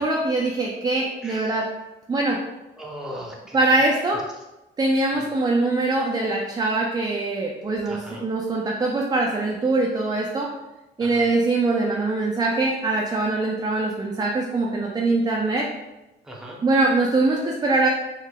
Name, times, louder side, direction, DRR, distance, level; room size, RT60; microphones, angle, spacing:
voice 1, 0.0-1.7 2.1-2.4 3.5-4.2 4.8-10.5 11.0-15.7 16.6-17.9, right 2 dB, 20° right, -1 dB, 0.4 m, -23 dB
voice 2, 1.2-1.6 2.8-3.6 4.1-4.2 5.1-5.3 7.9-8.2 11.0-11.3 16.2-16.6, equal, 5° right, -2 dB, 0.7 m, -38 dB
3.3 x 2.7 x 2.2 m, 1.0 s
cardioid pair, 90°, 20 cm